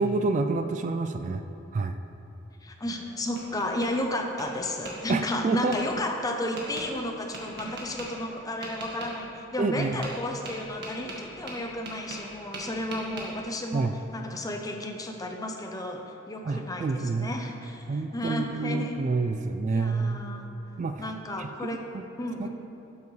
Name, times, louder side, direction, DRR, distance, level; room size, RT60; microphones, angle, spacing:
voice 1, 0.0-1.4 1.7-2.0 5.1-5.7 7.6-7.7 9.6-10.0 13.7-14.0 16.4-17.4 17.9-20.2 20.8-21.1 21.4-22.1 22.4-22.5, right 3 dB, 40° right, 8 dB, 0.3 m, -28 dB
voice 2, 2.6-18.9 19.7-20.5 21.0-21.8 22.2-22.5, left 1 dB, 20° left, 3 dB, 0.7 m, -33 dB
Tap, 2.9-3.9 4.4-4.9 5.7-5.8 6.6-6.9 7.3-8.1 8.6-9.1 9.8-10.2 10.5-12.3 12.5-13.3, right 2 dB, 60° right, 1.6 m, -40 dB
12.0 x 6.9 x 3.2 m, 2.9 s
head